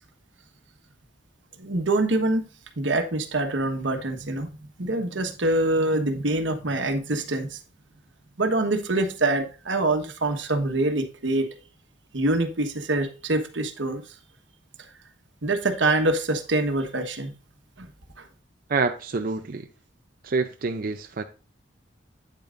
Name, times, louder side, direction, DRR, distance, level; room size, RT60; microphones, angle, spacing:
voice 1, 1.6-2.4 2.8-4.5 4.8-7.6 8.4-11.5 12.1-14.0 15.4-17.3 17.8-17.9, right 2 dB, 85° right, 1.3 m, -25 dB
voice 2, 18.7-19.7 20.2-21.2, right 4 dB, 50° right, 0.5 m, -27 dB
8.9 x 8.4 x 2.5 m
head